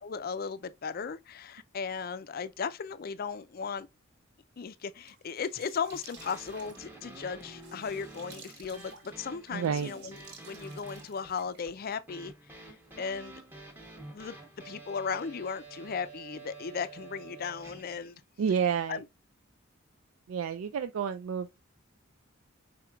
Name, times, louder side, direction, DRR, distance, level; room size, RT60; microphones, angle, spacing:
voice 1, 0.0-3.9 4.6-13.3 14.1-14.3 14.6-18.2 18.9-19.0, left 6 dB, 45° left, 0.4 m, -36 dB
sound 1, 4.8-12.1, right 4 dB, 55° right, 1.2 m, -54 dB
sound 2, 5.9-18.1, right 2 dB, 10° right, 0.8 m, -49 dB
voice 2, 9.5-10.1 18.4-19.0 20.3-21.6, right 7 dB, 85° right, 0.3 m, -30 dB
4.9 x 4.4 x 2.3 m
head